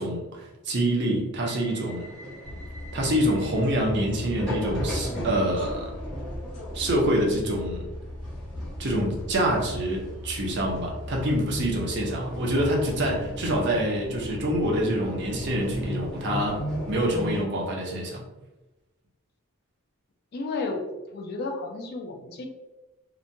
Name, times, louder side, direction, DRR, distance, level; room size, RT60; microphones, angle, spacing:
voice 1, 0.0-2.1 2.9-5.9 6.7-7.8 8.8-18.3, right 1 dB, 50° right, -1 dB, 0.6 m, -26 dB
sound 1, 1.4-17.4, equal, 5° left, 0.9 m, -36 dB
sound 2, 2.4-12.1, left 1 dB, 90° left, 0.9 m, -39 dB
voice 2, 20.3-22.5, left 3 dB, 45° left, 3 dB, 0.3 m, -32 dB
2.9 x 2.2 x 2.6 m, 1.1 s
head